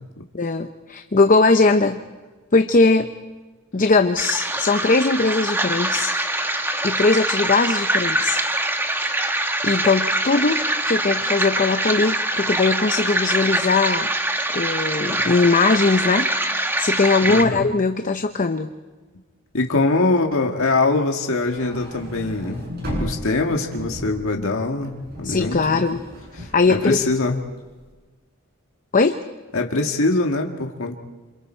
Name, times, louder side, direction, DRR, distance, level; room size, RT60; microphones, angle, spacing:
voice 1, 0.3-2.0 2.5-3.1 3.7-6.1 6.8-8.4 9.6-14.1 14.5-16.3 16.8-18.7 25.2-26.0 26.4-27.1 28.9-29.2, left 3 dB, 35° left, 7 dB, 0.8 m, -19 dB
sound 1, 4.2-17.4, right 1 dB, 10° right, 1.1 m, -24 dB
voice 2, 17.3-17.7 19.5-22.6 23.0-25.8 26.4-27.4 29.5-31.0, left 3 dB, 65° left, 2 dB, 1.9 m, -23 dB
sound 2, 21.4-27.7, equal, 45° right, 7.0 m, -34 dB
27.5 x 27.0 x 4.5 m, 1.3 s
head